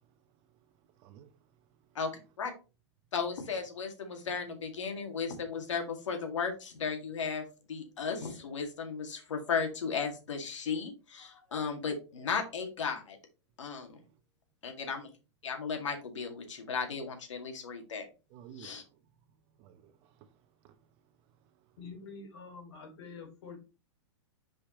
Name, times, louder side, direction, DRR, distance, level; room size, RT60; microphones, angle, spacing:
voice 1, 0.0-2.0 14.1-14.2 18.3-19.0 19.6-21.8, right 9 dB, 35° right, 0.9 m, -57 dB
voice 2, 3.1-13.2 13.6-14.0 14.6-15.1 15.4-18.1 18.6-18.8, left 5 dB, 85° left, 2.2 m, -35 dB
voice 3, 21.8-23.6, left 4 dB, 70° left, 3.1 m, -46 dB
6.4 x 5.1 x 3.2 m
hypercardioid pair, 135°, 15 cm